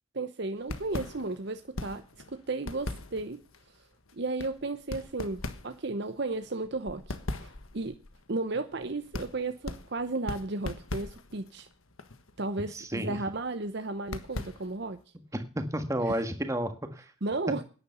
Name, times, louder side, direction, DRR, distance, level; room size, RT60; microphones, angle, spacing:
voice 1, 0.1-2.0 2.5-3.4 4.1-8.0 8.3-11.7 12.4-15.0 16.0-16.2 17.2-17.6, right 3 dB, 55° right, 9 dB, 0.8 m, -34 dB
sound 1, 0.6-15.0, left 2 dB, 85° left, 1.5 m, -41 dB
voice 2, 12.7-13.2 15.3-17.0, right 1 dB, 15° right, 7 dB, 1.6 m, -31 dB
10.5 x 10.0 x 6.8 m, 0.39 s
head